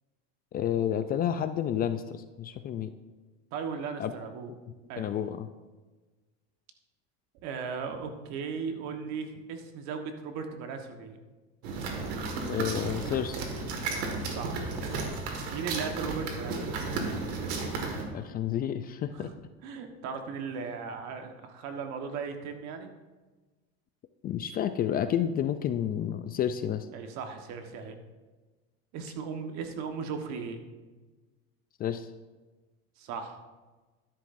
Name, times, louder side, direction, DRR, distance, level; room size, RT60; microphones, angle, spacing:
voice 1, 0.5-2.9 4.0-4.1 5.0-5.5 12.5-13.4 18.1-19.3 24.2-26.9 31.8-32.1, left 10 dB, 30° left, 10 dB, 0.4 m, -30 dB
voice 2, 3.5-4.5 4.9-5.1 7.4-11.2 14.2-14.7 15.5-16.7 19.1-19.3 19.6-22.9 26.9-27.9 28.9-30.6 33.0-33.4, right 5 dB, 60° right, 6 dB, 1.4 m, -37 dB
sound 1, 11.6-18.0, right 3 dB, 90° right, 2.0 m, -33 dB
12.0 x 10.5 x 2.6 m, 1.3 s
supercardioid pair, 135°, 31 cm